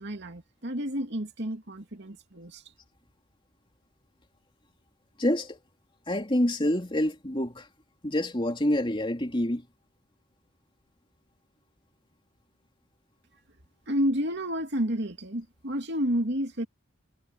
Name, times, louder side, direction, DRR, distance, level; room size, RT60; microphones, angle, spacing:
voice 1, 0.0-2.6 13.9-16.7, equal, 60° right, 2.7 m, -30 dB
voice 2, 5.2-5.6 6.1-7.7 8.0-9.6, left 1 dB, 25° left, 3.1 m, -27 dB
head